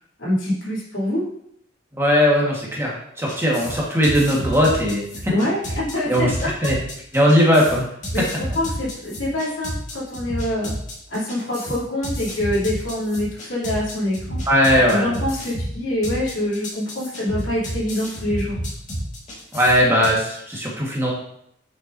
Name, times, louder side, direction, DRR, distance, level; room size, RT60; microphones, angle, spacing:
voice 1, 0.2-1.3 5.3-6.5 8.1-10.7 11.1-14.4 14.9-18.6, left 1 dB, 85° left, -7 dB, 2.9 m, -25 dB
voice 2, 1.9-5.3 6.1-6.3 6.6-6.8 7.1-7.8 14.5-15.2 19.5-21.1, equal, 15° right, -4 dB, 1.5 m, -18 dB
sound 1, 3.3-20.1, equal, 40° left, 1.8 m, -31 dB
7.9 x 5.9 x 2.7 m, 0.71 s
head